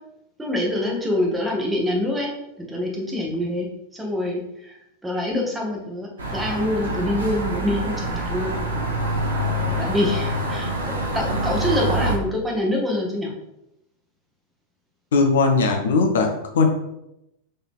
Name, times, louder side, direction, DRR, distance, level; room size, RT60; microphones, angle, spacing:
voice 1, 0.4-2.3 2.6-3.7 3.9-4.8 5.0-8.6 9.8-13.3, left 1 dB, 10° right, -1 dB, 1.1 m, -25 dB
sound 1, 6.2-12.2, right 1 dB, 75° right, 1.1 m, -26 dB
voice 2, 15.1-16.7, left 4 dB, 60° left, 4 dB, 0.6 m, -19 dB
3.9 x 3.5 x 3.6 m, 0.85 s
figure-of-eight pair, 90°, 0 cm